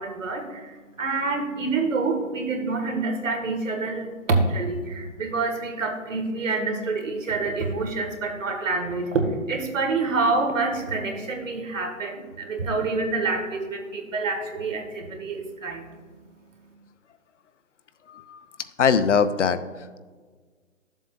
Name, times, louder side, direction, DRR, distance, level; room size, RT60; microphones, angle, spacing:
voice 1, 0.0-15.9, right 3 dB, 70° right, 4 dB, 1.8 m, -27 dB
voice 2, 18.1-18.5 18.8-20.0, left 6 dB, 60° left, 11 dB, 0.7 m, -22 dB
13.0 x 7.4 x 2.5 m, 1.4 s
hypercardioid pair, 155°, 41 cm